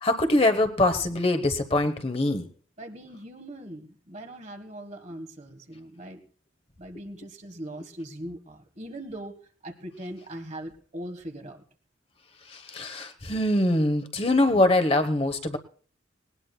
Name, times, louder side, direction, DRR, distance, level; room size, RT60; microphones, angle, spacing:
voice 1, 0.0-2.5 12.4-15.6, left 1 dB, 30° left, 7 dB, 1.0 m, -23 dB
voice 2, 2.8-6.2 6.8-11.6, right 1 dB, 35° right, 5 dB, 1.6 m, -40 dB
19.5 x 19.0 x 2.3 m, 0.43 s
head